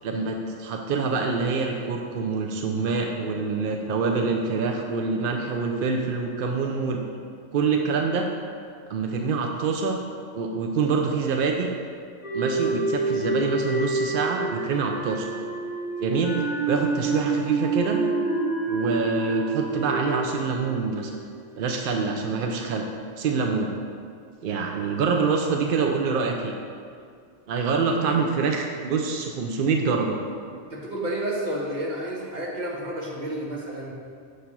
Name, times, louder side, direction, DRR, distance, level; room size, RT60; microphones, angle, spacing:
voice 1, 0.0-7.0 7.5-8.3 8.9-10.0 10.3-11.7 12.3-15.3 16.0-18.0 18.7-21.1 21.6-22.9 23.2-23.7 24.4-26.5 27.5-30.2, right 4 dB, 75° right, 2 dB, 0.5 m, -26 dB
sound 1, 12.2-21.4, right 3 dB, 40° left, 1.2 m, -28 dB
voice 2, 30.7-33.9, right 1 dB, 35° right, -3 dB, 1.1 m, -30 dB
6.8 x 3.3 x 5.9 m, 2.2 s
omnidirectional pair, 1.5 m